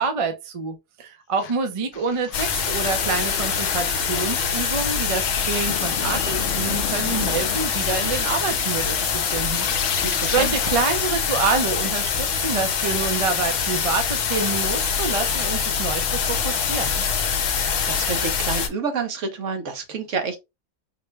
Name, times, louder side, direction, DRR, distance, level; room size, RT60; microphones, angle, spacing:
voice 1, 0.0-17.0, right 4 dB, 50° right, 0.4 m, -27 dB
sound 1, 1.4-1.6 1.9-11.1 11.5-11.6 11.9-12.0 12.3-12.4 12.7-12.8 13.2-13.6 14.0-14.7 15.3-15.4 16.1-16.2 16.5-16.8 17.1-18.7, left 8 dB, 85° left, 0.4 m, -35 dB
sound 2, 2.3-18.7, left 6 dB, 65° left, 1.0 m, -24 dB
voice 2, 10.0-10.5 17.9-20.4, right 5 dB, 65° right, 1.2 m, -28 dB
4.1 x 2.2 x 3.2 m
omnidirectional pair, 1.5 m